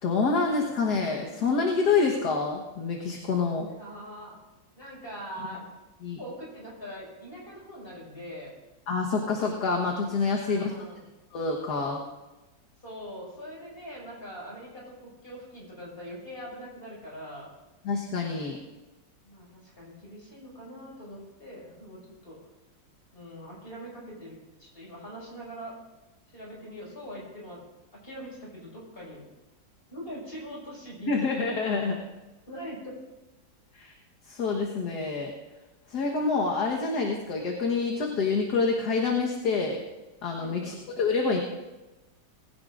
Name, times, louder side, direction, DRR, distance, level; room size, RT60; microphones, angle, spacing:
voice 1, 0.0-3.7 6.0-6.2 8.9-10.6 11.3-12.0 17.8-18.6 31.1-32.0 33.7-33.9 34.3-35.3 35.9-39.8 40.2-41.4, left 4 dB, 60° left, 0 dB, 1.8 m, -27 dB
voice 2, 3.7-4.4 4.8-5.7 6.2-8.5 10.3-11.0 12.8-17.5 19.2-22.5 23.1-25.8 26.3-27.6 27.9-29.2 29.9-31.1 32.5-33.0 40.4-40.8, equal, 30° left, -4 dB, 5.9 m, -42 dB
20.0 x 16.5 x 2.5 m, 1.1 s
omnidirectional pair, 2.0 m